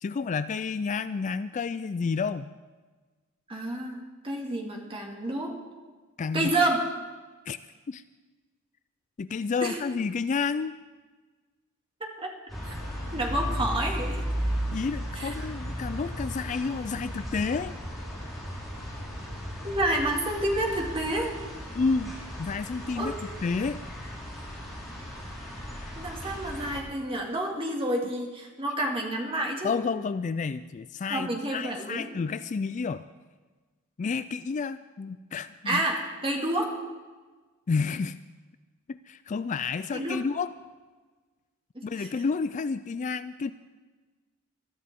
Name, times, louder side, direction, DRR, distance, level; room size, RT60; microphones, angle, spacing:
voice 1, 0.0-2.5 6.2-6.5 7.5-7.6 7.9-8.0 9.2-10.7 14.7-17.8 21.7-23.1 23.4-23.8 29.6-33.1 34.0-35.8 37.7-38.2 38.9-40.5 41.8-43.5, left 5 dB, 35° left, 13 dB, 0.3 m, -30 dB
voice 2, 3.5-4.0 4.2-5.6 6.3-6.8 9.6-9.8 12.2-12.3 13.1-14.2 15.2-15.3 19.6-21.4 23.0-23.1 26.0-29.8 31.1-32.1 35.7-36.8 39.9-40.2 41.7-42.1, right 1 dB, 25° right, 0 dB, 2.3 m, -29 dB
sound 1, 12.5-26.8, equal, ahead, 5.4 m, -35 dB
22.0 x 13.0 x 3.7 m, 1.3 s
head